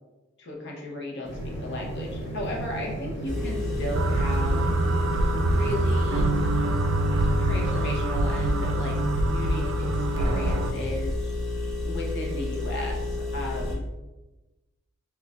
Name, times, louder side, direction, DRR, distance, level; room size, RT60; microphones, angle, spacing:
voice 1, 0.4-1.3 1.6-4.6 5.3-6.3 7.4-11.2 11.8-13.8, left 1 dB, 60° left, -2 dB, 0.9 m, -35 dB
sound 1, 1.2-6.2, right 1 dB, 30° left, 1.1 m, -35 dB
Engine, 3.2-13.7, left 2 dB, 5° left, 1.2 m, -30 dB
sound 2, 3.9-10.7, right 2 dB, 80° right, 0.4 m, -25 dB
6.0 x 2.4 x 2.5 m, 1.1 s
head